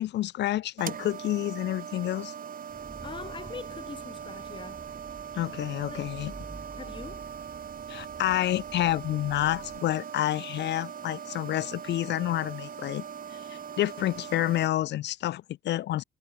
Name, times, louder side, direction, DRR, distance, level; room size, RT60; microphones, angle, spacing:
voice 1, 0.0-2.3 5.3-6.3 7.9-13.0 13.5-16.0, left 14 dB, 60° left, 0.4 m, -29 dB
sound 1, 0.8-14.7, right 8 dB, 45° right, 1.0 m, -41 dB
Engine, 2.7-9.8, right 2 dB, 15° right, 1.0 m, -48 dB
voice 2, 3.0-4.8 5.8-6.1 6.8-7.2, left 4 dB, 25° left, 1.0 m, -42 dB
cardioid pair, 90°, 20 cm